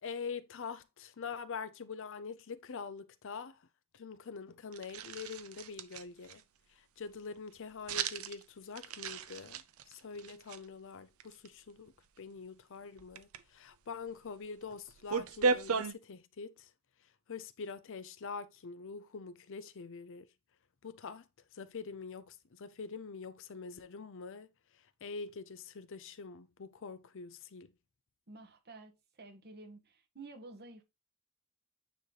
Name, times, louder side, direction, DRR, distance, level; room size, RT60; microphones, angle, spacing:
voice 1, 0.0-3.6 3.9-6.4 6.8-16.7 17.3-20.3 20.8-21.3 21.5-24.5 25.0-27.7, left 5 dB, 65° left, 0.6 m, -45 dB
sound 1, 4.7-6.4 7.9-8.4 8.8-10.6 11.2-11.5 13.0-13.4 14.3-14.4 14.6-15.9, right 5 dB, 80° right, 0.6 m, -35 dB
voice 2, 28.3-30.8, right 3 dB, 50° right, 1.4 m, -51 dB
9.3 x 3.2 x 3.9 m
head